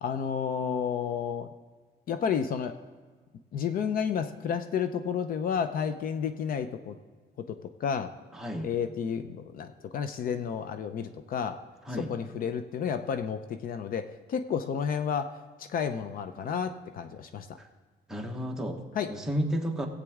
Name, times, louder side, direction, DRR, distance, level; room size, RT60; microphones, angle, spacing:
voice 1, 0.0-1.5 2.1-2.7 3.5-7.0 7.8-8.1 8.6-11.6 11.9-17.6 18.9-19.1, left 7 dB, 55° left, 9 dB, 0.6 m, -31 dB
voice 2, 8.3-8.7 11.9-12.1 17.6-17.7 18.1-18.8 19.1-19.9, equal, 5° right, 1 dB, 1.2 m, -31 dB
17.5 x 8.3 x 3.6 m, 1.4 s
cardioid pair, 140°, 17 cm